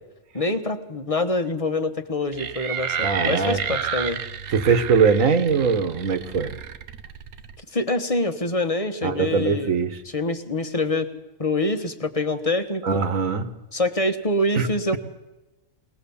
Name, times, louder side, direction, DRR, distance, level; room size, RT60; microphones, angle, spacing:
voice 1, 0.3-4.2 7.7-9.7 10.1-11.1 11.4-13.0 13.7-15.0, left 2 dB, 25° left, 8 dB, 1.2 m, -25 dB
sound 1, 2.3-7.6, right 8 dB, 85° right, 1.4 m, -31 dB
voice 2, 3.0-3.8 4.5-6.5 9.0-10.0 12.8-13.4 14.5-14.7, right 5 dB, 70° right, 11 dB, 1.7 m, -21 dB
21.5 x 18.5 x 7.1 m, 1.0 s
omnidirectional pair, 1.5 m